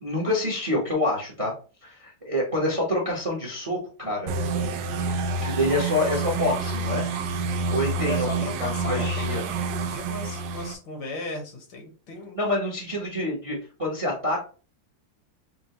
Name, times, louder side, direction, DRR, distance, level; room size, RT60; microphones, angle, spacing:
voice 1, 0.0-1.5 1.8-4.3 5.4-7.0 7.7-9.4 12.4-14.4, left 1 dB, 25° right, -2 dB, 0.7 m, -27 dB
sound 1, 4.3-10.7, right 3 dB, 80° right, 1.3 m, -28 dB
voice 2, 7.9-12.4, left 2 dB, 75° left, 2 dB, 1.9 m, -37 dB
5.8 x 2.2 x 2.9 m, 0.36 s
omnidirectional pair, 2.1 m